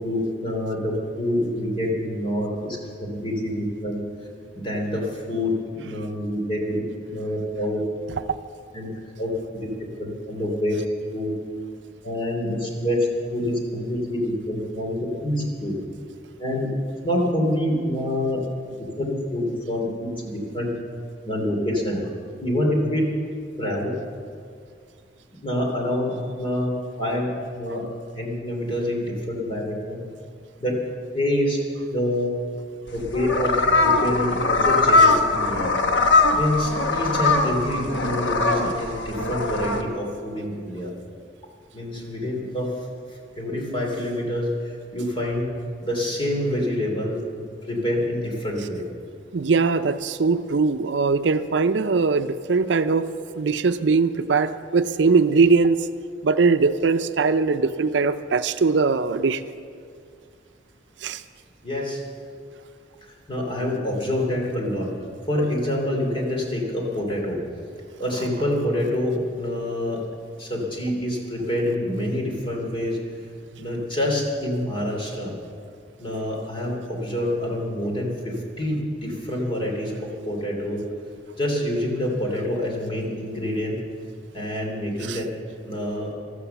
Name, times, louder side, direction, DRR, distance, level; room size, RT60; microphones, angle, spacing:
voice 1, 0.0-4.0 4.5-6.8 7.1-7.8 8.7-8.9 9.2-9.3 9.6-9.7 10.0-10.8 11.1-11.3 12.0-15.8 16.4-16.7 17.0-18.4 18.8-20.7 21.2-22.0 22.4-23.1 23.6-24.0 25.4-27.3 27.5-27.9 28.1-30.0 30.6-30.8 31.1-31.6 31.9-32.3 32.9-35.7 36.4-40.9 41.7-42.7 43.4-45.5 45.8-47.2 47.7-48.8 61.6-62.0 63.3-64.9 65.3-67.4 68.0-70.0 70.4-73.0 73.6-75.3 76.0-80.8 81.4-83.8 84.3-85.3 85.6-86.1, left 1 dB, 30° left, 0 dB, 3.0 m, -26 dB
sound 1, 32.9-39.8, left 3 dB, 80° left, 1.3 m, -21 dB
voice 2, 49.3-53.1 53.4-55.8 56.2-59.4 61.0-61.2 85.1-85.2, right 4 dB, 70° right, 11 dB, 0.5 m, -21 dB
14.5 x 13.0 x 6.9 m, 2.2 s
head